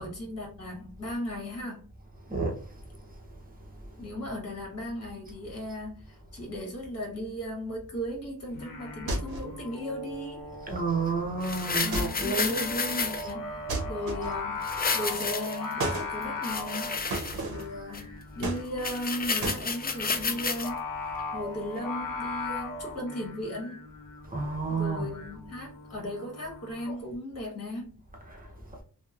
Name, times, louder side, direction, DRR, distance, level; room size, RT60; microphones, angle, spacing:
voice 1, 0.0-1.9 4.0-10.5 11.8-17.1 17.4-20.9 21.3-23.9 24.7-28.0, left 1 dB, 40° left, 1.2 m, -36 dB
Singing, 8.5-27.0, left 3 dB, 60° left, 0.9 m, -39 dB
sound 1, 9.1-9.6 11.9-12.4 13.7-14.5 15.8-16.1 17.1-17.7 18.4-19.0 19.4-19.6, right 2 dB, 75° right, 0.7 m, -33 dB
voice 2, 10.7-12.7 24.3-25.1 28.3-28.4, right 4 dB, 25° right, 0.8 m, -30 dB
sound 2, 11.4-13.3 14.6-15.7 16.2-17.6 17.9-18.0 18.4-18.5 18.8-20.7 21.2-21.3, left 4 dB, 25° left, 0.4 m, -31 dB
2.8 x 2.1 x 2.4 m
wide cardioid pair, 80°, 37 cm